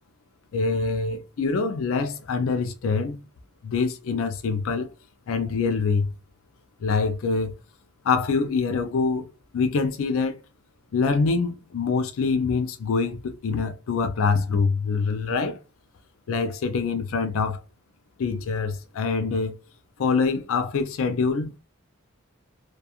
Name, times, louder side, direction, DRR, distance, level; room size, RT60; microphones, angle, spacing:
voice 1, 0.5-3.2 3.6-4.9 5.3-6.1 6.8-7.5 8.0-9.3 9.5-10.4 10.9-15.6 16.3-17.6 18.2-19.5 20.0-21.5, left 4 dB, 75° left, 0.4 m, -25 dB
2.4 x 2.3 x 2.7 m
head